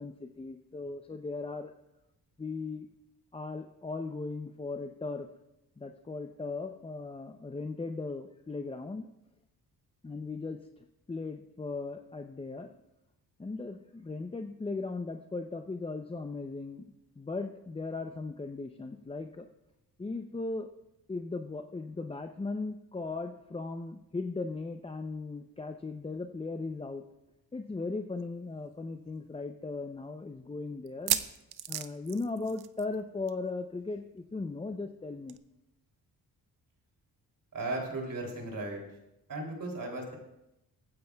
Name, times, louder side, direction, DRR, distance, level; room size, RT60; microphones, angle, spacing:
voice 1, 0.0-1.7 2.4-2.9 3.3-5.3 5.8-9.1 10.0-12.7 13.4-16.9 17.2-19.5 20.0-20.7 21.1-27.0 27.5-31.2 31.7-35.4, left 3 dB, 15° left, 6 dB, 0.5 m, -37 dB
sound 1, 28.2-28.3 28.6-28.7 29.3-29.4 30.9-33.0 33.3-33.5 33.7-33.8 35.3-35.4, right 11 dB, 75° right, 0.7 m, -34 dB
voice 2, 37.5-38.8 39.3-40.1, right 2 dB, 55° right, 1 dB, 3.0 m, -36 dB
22.5 x 9.3 x 2.3 m, 0.91 s
cardioid pair, 85°, 38 cm